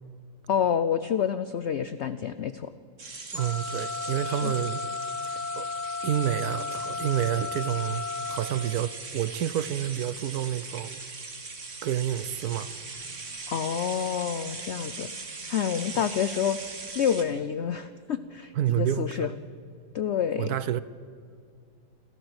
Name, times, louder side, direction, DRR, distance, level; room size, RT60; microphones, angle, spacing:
voice 1, 0.5-2.7 4.2-4.5 13.5-15.1 15.5-16.6 16.9-19.3 19.9-20.5, left 8 dB, 70° left, 0.6 m, -28 dB
sound 1, 3.0-17.2, right 4 dB, 45° right, 2.1 m, -40 dB
voice 2, 3.3-4.8 5.2-5.7 6.0-11.0 11.8-12.7 15.9-16.1 18.6-19.3 20.4-20.8, right 11 dB, 70° right, 1.1 m, -29 dB
sound 2, 3.4-8.4, left 4 dB, 25° left, 2.2 m, -34 dB
27.5 x 12.5 x 8.0 m
omnidirectional pair, 1.9 m